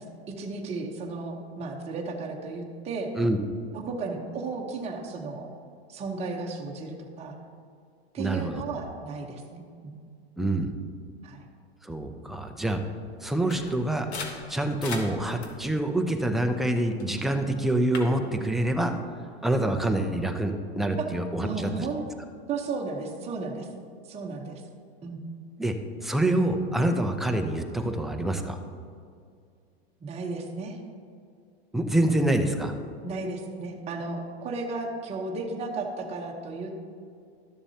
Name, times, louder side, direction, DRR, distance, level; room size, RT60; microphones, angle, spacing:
voice 1, 0.0-3.1 3.7-5.5 5.9-7.4 8.1-9.6 11.2-11.5 21.0-21.1 21.4-22.0 22.5-23.7 24.0-24.6 25.0-25.2 30.0-30.8 33.0-36.7, right 3 dB, 20° right, 0 dB, 1.0 m, -34 dB
voice 2, 8.2-8.6 10.4-10.7 11.8-12.8 13.2-14.1 14.5-18.9 19.4-21.9 25.6-25.7 26.0-28.6 31.7-32.7, right 1 dB, ahead, 4 dB, 0.4 m, -26 dB
sound 1, 13.5-17.1 17.6-18.1, left 4 dB, 85° left, 1.3 m, -41 dB
12.5 x 6.9 x 2.8 m, 2.3 s
hypercardioid pair, 120°, 32 cm